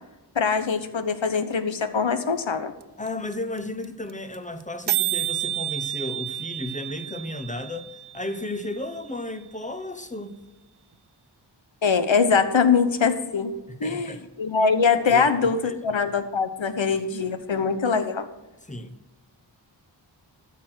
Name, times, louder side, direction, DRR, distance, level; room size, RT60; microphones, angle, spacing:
voice 1, 0.3-2.7 11.8-13.5 13.8-18.3, left 5 dB, 80° left, 10 dB, 1.0 m, -23 dB
sound 1, 2.8-2.9 3.1-3.2 3.3-3.6 3.8-4.3 4.6-4.7 4.9-8.8, right 13 dB, 60° right, 0.5 m, -30 dB
voice 2, 3.0-10.4 13.7-14.2 15.1-15.3 15.6-15.8 18.6-18.9, left 1 dB, 15° left, 10 dB, 0.9 m, -34 dB
13.5 x 6.1 x 6.3 m, 1.0 s
wide cardioid pair, 60°, 45 cm